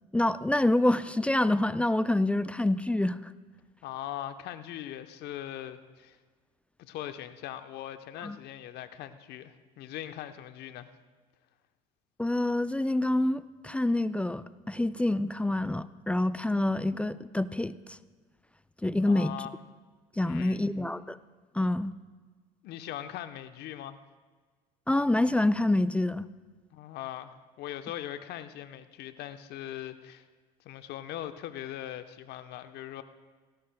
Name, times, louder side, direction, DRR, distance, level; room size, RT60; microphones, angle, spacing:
voice 1, 0.1-3.2 8.2-8.4 12.2-18.0 18.8-19.3 20.2-21.2 21.5-21.9 24.9-26.3, left 1 dB, 5° left, 15 dB, 0.3 m, -27 dB
voice 2, 3.8-6.2 6.8-10.9 19.0-19.5 20.2-20.7 22.6-24.0 26.7-27.3 27.6-30.2 30.6-33.0, left 12 dB, 55° left, 9 dB, 0.9 m, -40 dB
18.5 x 16.5 x 2.2 m, 1.4 s
hypercardioid pair, 75°, 20 cm